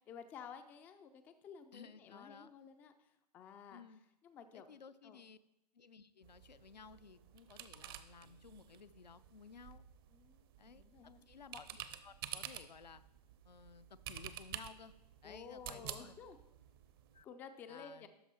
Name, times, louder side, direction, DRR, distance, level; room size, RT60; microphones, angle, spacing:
voice 1, 0.1-3.8 4.2-4.7 5.0-5.2 10.1-11.3 15.2-16.4 17.2-18.1, left 6 dB, 10° left, 9 dB, 0.3 m, -53 dB
voice 2, 1.7-2.5 3.7-4.0 4.5-5.4 5.7-9.8 10.6-13.0 13.4-14.9 15.2-16.2 17.1-17.3 17.7-18.1, left 5 dB, 80° left, 13 dB, 0.6 m, -56 dB
sound 1, 6.2-17.2, right 11 dB, 35° right, 0.6 m, -51 dB
12.5 x 4.7 x 4.3 m, 0.86 s
figure-of-eight pair, 130°, 21 cm